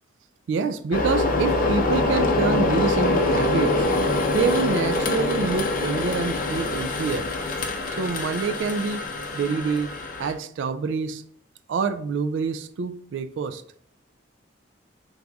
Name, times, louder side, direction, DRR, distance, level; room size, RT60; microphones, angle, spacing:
voice 1, 0.5-3.9 4.3-7.3 7.9-9.1 9.3-11.2 11.7-13.6, right 5 dB, 70° right, 0.3 m, -27 dB
sound 1, 0.9-10.3, left 2 dB, 45° left, 0.5 m, -24 dB
4.7 x 3.9 x 2.3 m
head